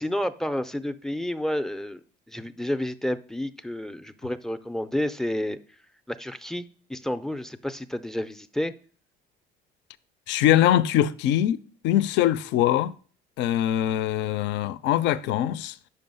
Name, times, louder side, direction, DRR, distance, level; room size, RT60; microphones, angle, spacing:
voice 1, 0.0-2.0 2.3-5.6 6.1-6.6 6.9-8.7, left 1 dB, ahead, 0.4 m, -30 dB
voice 2, 10.3-12.9 13.4-15.8, left 12 dB, 70° left, 0.4 m, -23 dB
5.5 x 5.0 x 5.4 m
cardioid pair, 110°, 19 cm